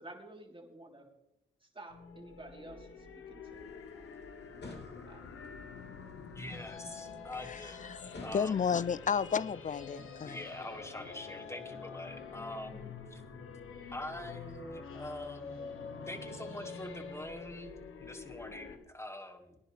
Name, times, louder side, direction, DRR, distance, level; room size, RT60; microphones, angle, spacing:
voice 1, 0.0-1.1 1.8-3.7 5.1-5.3, right 2 dB, 25° right, 3.6 m, -51 dB
sound 1, 1.9-18.8, left 5 dB, 80° left, 1.5 m, -47 dB
sound 2, 3.5-9.2, left 2 dB, 55° left, 2.9 m, -53 dB
voice 2, 6.4-7.8 8.2-8.6 10.2-13.2 13.9-15.7 16.1-19.6, left 1 dB, 15° left, 2.0 m, -44 dB
voice 3, 7.5-8.0 8.3-10.4, left 6 dB, 40° left, 0.4 m, -32 dB
21.0 x 10.5 x 3.4 m
supercardioid pair, 50°, 21 cm